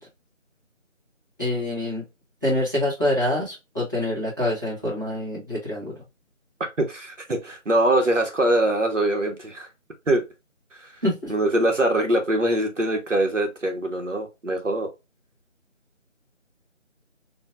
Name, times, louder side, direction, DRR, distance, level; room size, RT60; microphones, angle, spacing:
voice 1, 1.4-2.0 2.4-6.0 11.0-11.3, left 1 dB, 15° right, -10 dB, 1.3 m, -26 dB
voice 2, 6.8-9.7 10.1-10.2 10.7-10.9 11.3-14.9, right 1 dB, 70° right, 4 dB, 1.4 m, -23 dB
4.8 x 2.8 x 2.5 m, 0.24 s
figure-of-eight pair, 170°, 39 cm